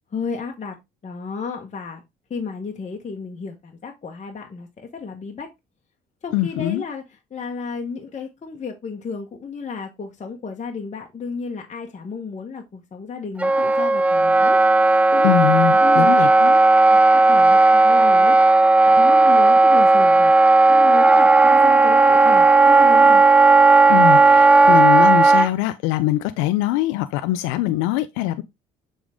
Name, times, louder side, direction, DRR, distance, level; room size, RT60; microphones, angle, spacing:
voice 1, 0.1-0.8 1.0-2.0 2.3-5.5 6.2-7.0 7.3-14.6 15.1-15.4 15.8-16.1 16.9-17.0 17.3-18.4 18.9-20.3 20.7-23.2, left 5 dB, 35° left, 1.3 m, -32 dB
voice 2, 6.3-6.8 15.2-16.6 23.9-28.4, left 15 dB, 80° left, 0.5 m, -22 dB
Wind instrument woodwind instrument, 13.4-25.5, right 3 dB, 5° right, 0.4 m, -14 dB
7.1 x 3.8 x 3.5 m
hypercardioid pair, 60°, 20 cm